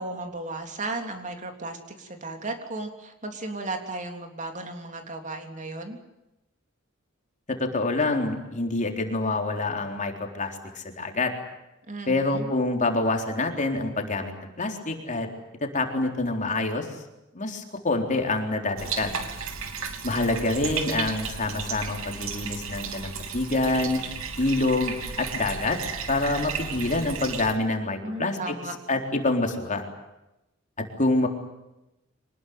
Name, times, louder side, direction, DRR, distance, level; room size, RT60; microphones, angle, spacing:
voice 1, 0.0-6.0 11.9-12.5 28.0-28.8, right 2 dB, 40° right, 5 dB, 3.4 m, -35 dB
voice 2, 7.5-11.3 12.1-15.3 15.6-16.9 17.3-19.1 20.0-24.0 24.4-25.8 26.1-28.5 28.9-29.8 30.8-31.3, left 2 dB, 40° left, 3 dB, 3.9 m, -26 dB
Bathtub (filling or washing), 18.8-27.5, right 5 dB, 85° right, 3.2 m, -34 dB
25.5 x 20.0 x 9.5 m, 0.93 s
head